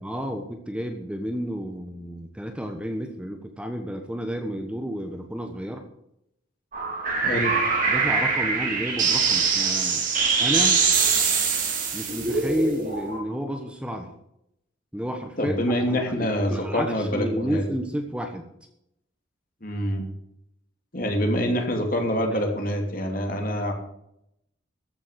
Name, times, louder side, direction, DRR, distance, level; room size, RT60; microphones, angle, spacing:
voice 1, 0.0-5.8 7.9-10.1 10.4-10.9 11.9-14.1 14.9-18.5, equal, 5° right, 4 dB, 1.2 m, -31 dB
sound 1, 6.7-13.2, right 5 dB, 40° right, 3.3 m, -23 dB
voice 2, 7.2-7.6 15.4-17.6 19.6-20.0 20.9-23.7, equal, 45° left, 3 dB, 2.9 m, -25 dB
14.5 x 7.2 x 8.1 m, 0.79 s
head